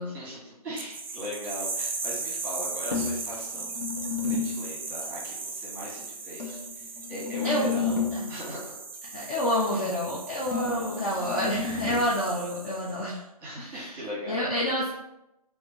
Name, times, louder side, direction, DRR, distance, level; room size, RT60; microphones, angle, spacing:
voice 1, 0.0-8.7 10.5-11.3 12.1-12.2 13.4-14.5, equal, 10° right, -7 dB, 1.2 m, -39 dB
sound 1, 0.8-13.1, right 4 dB, 35° right, 0.5 m, -37 dB
sound 2, 2.9-4.7 6.4-8.3 10.5-12.0, left 5 dB, 80° left, 1.1 m, -31 dB
voice 2, 9.1-13.2 13.6-13.9 14.3-14.9, equal, 20° left, -6 dB, 0.5 m, -28 dB
4.5 x 2.6 x 2.6 m, 0.90 s
figure-of-eight pair, 145°, 20 cm